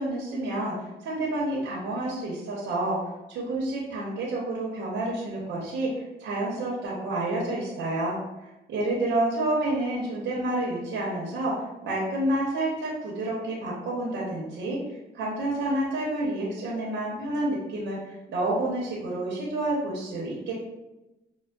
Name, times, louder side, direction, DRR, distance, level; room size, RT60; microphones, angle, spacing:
voice 1, 0.0-3.0 3.3-8.2 8.7-14.8 15.1-20.5, right 1 dB, 70° right, -5 dB, 0.8 m, -29 dB
5.3 x 2.1 x 2.3 m, 1.0 s
cardioid pair, 90°, 20 cm